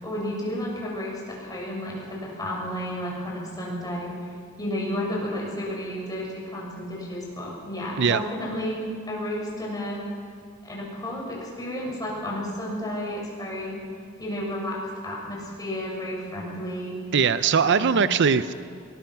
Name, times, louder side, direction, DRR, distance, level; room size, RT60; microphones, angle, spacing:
voice 1, 0.0-4.1 4.6-10.0 10.6-13.8 14.2-14.8 15.0-17.0 17.6-18.0 18.4-18.5, equal, 20° left, -3 dB, 6.9 m, -32 dB
voice 2, 17.1-18.5, right 6 dB, 55° right, 13 dB, 0.5 m, -20 dB
22.5 x 21.0 x 6.0 m, 2.3 s
head